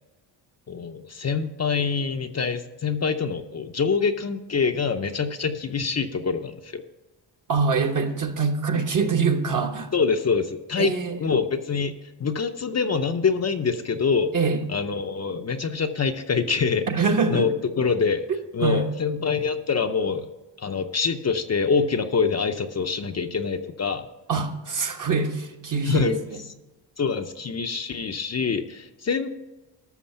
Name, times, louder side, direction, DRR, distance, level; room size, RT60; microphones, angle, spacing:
voice 1, 0.7-6.8 9.9-11.9 12.2-14.3 14.7-16.9 17.3-18.2 18.5-20.3 20.6-24.1 25.9-26.2 26.5-26.6 27.0-29.3, left 5 dB, 35° left, 6 dB, 0.6 m, -25 dB
voice 2, 7.5-9.9 10.8-11.2 14.3-14.6 16.9-17.5 18.6-18.9 24.3-26.2, right 4 dB, 40° right, 4 dB, 1.2 m, -24 dB
13.0 x 6.4 x 5.6 m, 1.1 s
cardioid pair, 90°, 46 cm